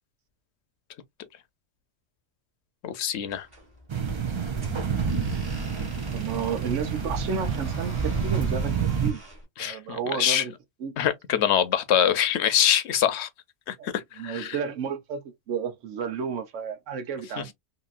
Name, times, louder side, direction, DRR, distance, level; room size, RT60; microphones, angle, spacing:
voice 1, 2.8-3.5 9.6-10.4 11.0-13.3 13.7-14.6 17.4-17.5, left 10 dB, 70° left, 0.9 m, -24 dB
sound 1, 3.2-9.4, right 1 dB, 20° right, 1.2 m, -45 dB
sound 2, 3.9-9.1, right 6 dB, 50° right, 0.3 m, -28 dB
voice 2, 6.1-9.2 9.6-10.5 10.8-10.9 13.8-13.9 14.2-15.2 15.5-17.5, right 6 dB, 85° right, 1.1 m, -32 dB
2.8 x 2.6 x 2.4 m
omnidirectional pair, 1.2 m